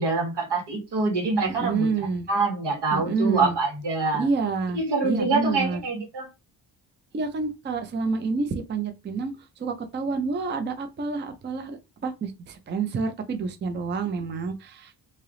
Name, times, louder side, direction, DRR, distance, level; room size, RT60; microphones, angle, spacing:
voice 1, 0.0-4.3 4.7-6.3, right 3 dB, 85° right, 1.7 m, -25 dB
voice 2, 1.4-2.3 2.9-3.6 4.1-5.8 7.1-15.0, right 4 dB, 30° right, 0.4 m, -28 dB
3.2 x 2.8 x 3.7 m
wide cardioid pair, 170°, 41 cm